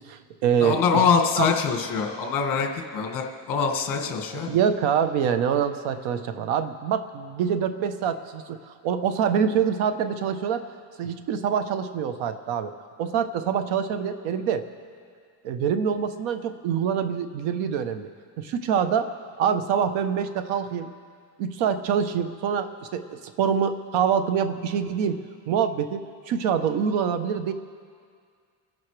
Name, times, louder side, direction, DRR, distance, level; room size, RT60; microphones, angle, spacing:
voice 1, 0.0-1.0 1.4-1.5 4.3-10.6 11.0-12.7 13.0-14.6 15.4-18.1 18.4-19.1 19.4-20.9 21.4-25.2 25.5-27.5, right 7 dB, 85° right, 9 dB, 1.1 m, -25 dB
voice 2, 0.6-4.5, left 6 dB, 45° left, 2 dB, 1.9 m, -24 dB
30.0 x 11.0 x 3.3 m, 2.1 s
cardioid pair, 155°, 46 cm